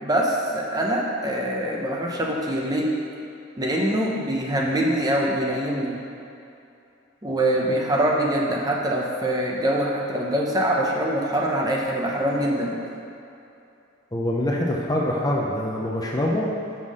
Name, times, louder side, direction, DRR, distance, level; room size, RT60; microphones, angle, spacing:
voice 1, 0.0-2.9 3.6-5.9 7.2-12.8, right 1 dB, 20° right, -2 dB, 0.8 m, -24 dB
voice 2, 14.1-16.5, left 1 dB, 20° left, -2 dB, 0.7 m, -24 dB
5.9 x 5.6 x 6.3 m, 2.7 s
head